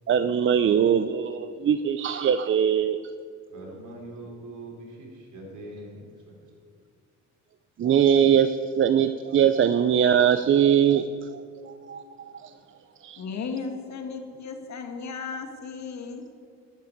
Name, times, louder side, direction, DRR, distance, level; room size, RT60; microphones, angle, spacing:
voice 1, 0.1-3.0 7.8-12.5 13.0-13.2, right 8 dB, 40° right, 11 dB, 0.5 m, -22 dB
voice 2, 3.5-6.5, right 1 dB, 75° right, -1 dB, 4.3 m, -42 dB
voice 3, 13.2-16.4, left 5 dB, 65° left, 5 dB, 1.9 m, -35 dB
12.5 x 7.4 x 9.5 m, 2.2 s
cardioid pair, 90°, 30 cm